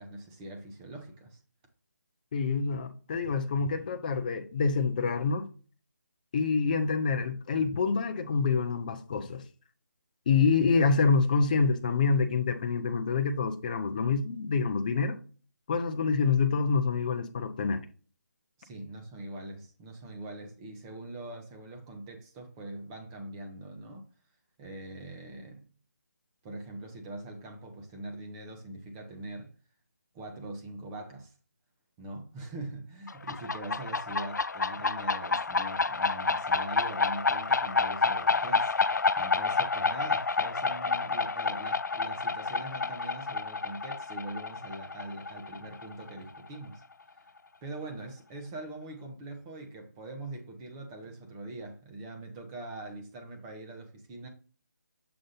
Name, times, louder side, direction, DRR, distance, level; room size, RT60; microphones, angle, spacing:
voice 1, 0.0-1.4 18.6-24.1 24.6-25.7 26.4-29.5 30.1-31.3 32.0-46.8 47.1-47.3 47.6-54.3, right 2 dB, 15° right, 0.8 m, -42 dB
voice 2, 2.3-5.5 6.3-9.4 10.3-15.2 15.7-17.8, left 5 dB, 30° left, 0.5 m, -27 dB
sound 1, 33.1-46.5, left 4 dB, 90° left, 0.4 m, -29 dB
6.7 x 2.5 x 5.5 m
figure-of-eight pair, 160°, 9 cm